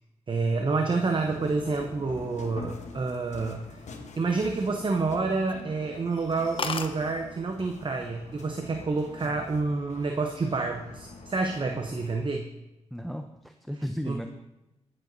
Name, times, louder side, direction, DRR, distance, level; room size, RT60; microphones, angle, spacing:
voice 1, 0.3-3.8 4.2-12.5 14.1-14.2, right 3 dB, 40° right, 4 dB, 0.7 m, -28 dB
sound 1, 1.0-12.3, left 3 dB, 70° left, 1.1 m, -45 dB
sound 2, 4.1-5.1 5.5-5.7 6.1-6.2 6.3-6.4 6.6-6.9 7.9-8.2 8.5-8.9, left 4 dB, 45° left, 0.8 m, -34 dB
voice 2, 12.9-14.3, equal, ahead, 6 dB, 0.5 m, -35 dB
16.5 x 7.7 x 2.6 m, 0.96 s
cardioid pair, 55°, 12 cm